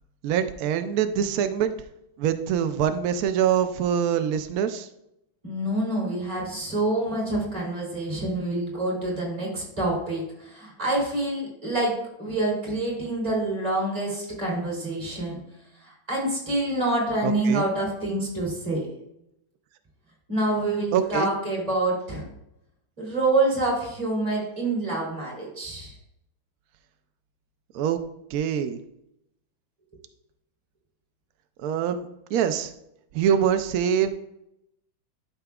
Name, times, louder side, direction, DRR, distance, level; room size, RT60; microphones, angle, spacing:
voice 1, 0.2-1.7 2.2-4.9 17.2-17.7 20.9-21.3 27.7-28.0 28.3-28.8 31.6-32.1 32.3-32.7 33.1-34.1, right 8 dB, 80° right, 9 dB, 0.8 m, -24 dB
voice 2, 5.4-11.9 12.2-15.4 15.8-18.9 20.3-22.2 23.0-25.9, right 2 dB, 20° right, -4 dB, 3.0 m, -27 dB
12.0 x 5.8 x 2.3 m, 0.81 s
omnidirectional pair, 2.1 m